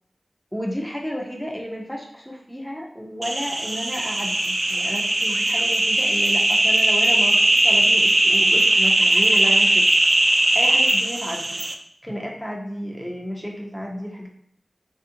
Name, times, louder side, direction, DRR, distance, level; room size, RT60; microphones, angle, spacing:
voice 1, 0.5-9.9 10.5-11.6 12.0-14.3, equal, 5° left, -1 dB, 0.6 m, -32 dB
sound 1, 3.2-11.7, right 1 dB, 50° right, 0.4 m, -19 dB
3.4 x 2.4 x 2.8 m, 0.70 s
wide cardioid pair, 55°, 0 cm